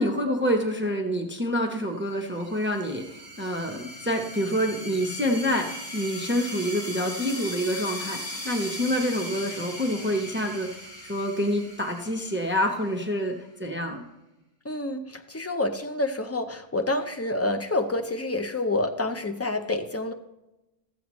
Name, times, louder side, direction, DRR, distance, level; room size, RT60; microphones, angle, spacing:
voice 1, 0.0-13.3 13.6-14.0, equal, 10° right, 2 dB, 0.8 m, -27 dB
sound 1, 2.0-13.3, left 1 dB, 70° left, 2.2 m, -39 dB
voice 2, 14.6-20.1, left 2 dB, 20° left, 6 dB, 0.5 m, -28 dB
14.0 x 7.9 x 3.1 m, 0.98 s
omnidirectional pair, 1.1 m